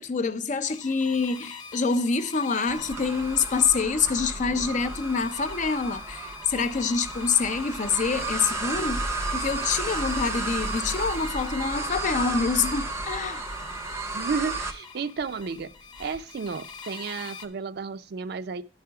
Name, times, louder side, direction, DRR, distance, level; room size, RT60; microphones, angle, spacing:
voice 1, 0.0-13.4, left 5 dB, 40° left, 0.5 m, -26 dB
sound 1, 0.7-17.5, left 5 dB, 25° left, 1.0 m, -45 dB
sound 2, 2.7-14.7, right 3 dB, 15° right, 0.6 m, -33 dB
voice 2, 14.1-15.7 16.0-18.6, right 5 dB, 60° right, 0.4 m, -32 dB
10.0 x 4.9 x 4.6 m
head